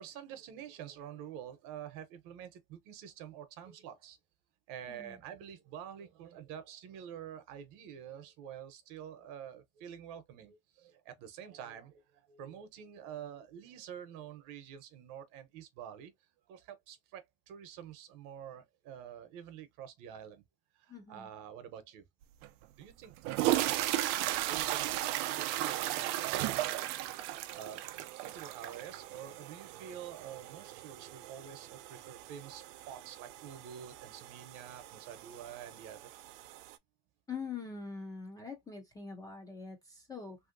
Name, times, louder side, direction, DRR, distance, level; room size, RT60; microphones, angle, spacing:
voice 1, 0.0-4.2 4.7-16.1 16.5-20.4 20.7-22.0 22.8-27.8 28.2-36.5, right 9 dB, 55° right, 0.8 m, -48 dB
voice 2, 20.9-21.3 37.3-40.4, left 5 dB, 10° left, 0.3 m, -43 dB
sound 1, 22.4-22.5 23.1-36.8, right 15 dB, 80° right, 0.5 m, -36 dB
3.2 x 2.7 x 2.5 m
cardioid pair, 170°, 36 cm